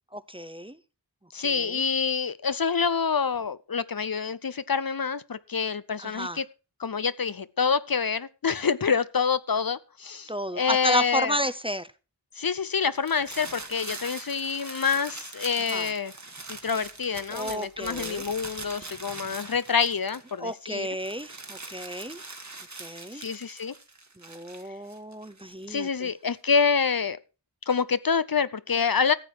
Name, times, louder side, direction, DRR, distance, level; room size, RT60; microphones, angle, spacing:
voice 1, 0.1-0.8 1.4-1.8 6.0-6.4 10.3-11.9 15.7-15.9 17.3-18.2 20.4-22.2 22.8-23.2 24.2-26.1, equal, 15° right, 0.7 m, -32 dB
voice 2, 1.3-6.4 6.8-11.4 12.4-16.1 16.5-20.9 23.1-23.7 25.7-27.2 27.7-29.1, left 6 dB, 55° left, 0.6 m, -27 dB
sound 1, 12.9-20.5 20.8-25.6, right 3 dB, 40° right, 1.5 m, -42 dB
14.5 x 7.7 x 4.5 m
wide cardioid pair, 45°, 43 cm